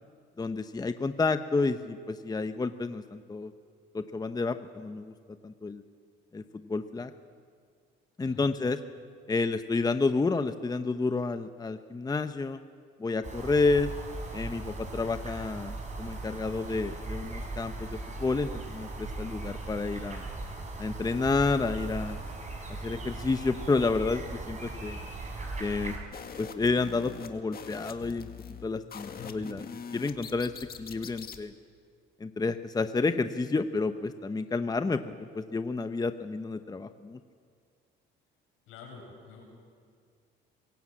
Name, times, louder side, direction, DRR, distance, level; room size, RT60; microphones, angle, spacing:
voice 1, 0.4-3.5 3.9-5.1 5.4-5.8 6.3-7.1 8.2-8.8 9.3-12.6 13.0-13.9 14.3-20.3 20.8-22.2 22.7-25.0 25.6-26.0 26.4-28.3 28.6-30.5 30.8-31.5 32.2-37.2, left 3 dB, 20° left, 9 dB, 0.9 m, -30 dB
sound 1, 13.2-26.0, right 2 dB, 35° right, 6.1 m, -39 dB
sound 2, 26.1-31.4, left 6 dB, 45° left, 1.8 m, -44 dB
voice 2, 29.1-29.5 38.7-39.4, left 5 dB, 80° left, 0 dB, 7.1 m, -47 dB
23.5 x 16.5 x 8.7 m, 2.1 s
supercardioid pair, 85°, 21 cm